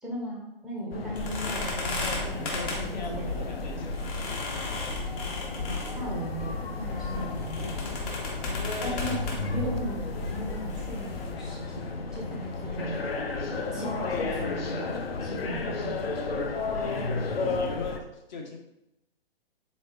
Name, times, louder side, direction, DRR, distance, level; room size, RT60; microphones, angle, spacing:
voice 1, 0.0-3.7 5.6-8.0 8.8-9.2 9.5-13.0 13.7-14.9 15.2-16.2, equal, ahead, -3 dB, 0.4 m, -38 dB
sound 1, 0.9-18.0, left 3 dB, 75° left, 0.6 m, -33 dB
sound 2, 1.2-11.3, left 2 dB, 30° left, 1.3 m, -35 dB
voice 2, 2.3-4.3 7.2-7.4 8.5-9.1 9.5-9.7 16.7-17.1 17.6-18.6, left 3 dB, 50° left, 2 dB, 0.9 m, -40 dB
4.1 x 3.2 x 3.1 m, 0.90 s
figure-of-eight pair, 125°, 30 cm